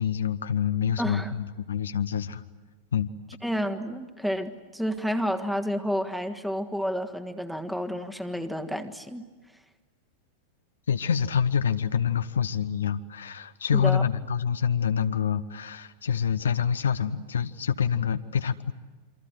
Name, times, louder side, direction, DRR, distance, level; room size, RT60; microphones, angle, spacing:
voice 1, 0.0-2.4 2.9-3.1 10.9-18.7, left 7 dB, 70° left, 10 dB, 0.8 m, -26 dB
voice 2, 1.0-1.3 3.4-9.2 13.7-14.0, equal, 5° right, 7 dB, 1.6 m, -30 dB
27.5 x 25.0 x 7.8 m, 1.3 s
figure-of-eight pair, 90°, 0 cm